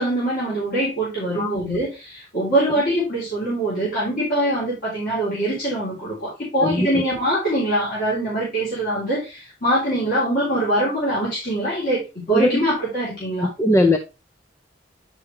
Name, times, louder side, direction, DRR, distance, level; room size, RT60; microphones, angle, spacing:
voice 1, 0.0-13.5, right 1 dB, 50° left, -8 dB, 3.3 m, -23 dB
voice 2, 12.3-12.6 13.6-14.0, left 1 dB, 15° left, 6 dB, 0.5 m, -18 dB
9.7 x 4.7 x 3.1 m, 0.28 s
head